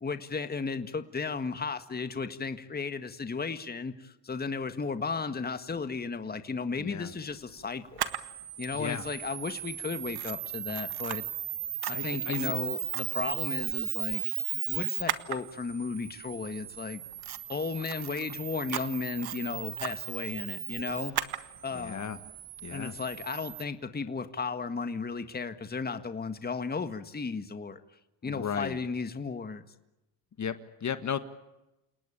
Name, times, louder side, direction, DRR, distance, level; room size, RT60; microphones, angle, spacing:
voice 1, 0.0-8.0 8.6-11.2 11.9-14.2 14.5-17.0 17.5-21.1 21.6-22.1 22.7-27.8 28.2-29.6, left 4 dB, 20° left, 10 dB, 1.7 m, -34 dB
voice 2, 6.8-7.1 8.7-9.1 11.9-12.5 21.7-22.2 22.6-22.9 28.2-28.8 30.4-31.2, left 7 dB, 40° left, 11 dB, 1.7 m, -35 dB
Camera, 8.0-23.6, right 11 dB, 55° right, 1.7 m, -36 dB
29.5 x 18.5 x 8.6 m, 0.97 s
cardioid pair, 105°, 45 cm